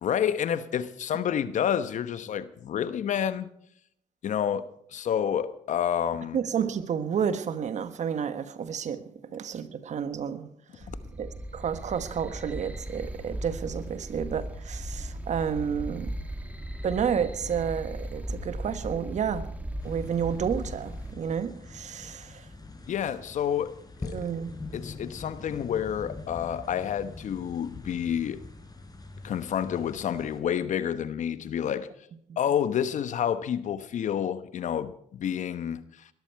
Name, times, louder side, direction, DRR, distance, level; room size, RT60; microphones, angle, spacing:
voice 1, 0.0-3.5 4.2-6.4 10.9-11.0 22.9-23.7 24.0-24.2 24.7-28.4 29.2-31.9 32.4-35.8, left 9 dB, 60° left, 1.0 m, -29 dB
voice 2, 6.3-9.0 9.3-10.5 11.2-16.1 16.8-19.5 19.8-22.5 24.1-24.5, right 7 dB, 60° right, 1.3 m, -30 dB
sound 1, 10.8-21.1, right 1 dB, 10° right, 2.3 m, -37 dB
sound 2, 19.8-30.4, left 2 dB, 25° left, 4.8 m, -43 dB
20.0 x 13.0 x 4.7 m
supercardioid pair, 55°, 14 cm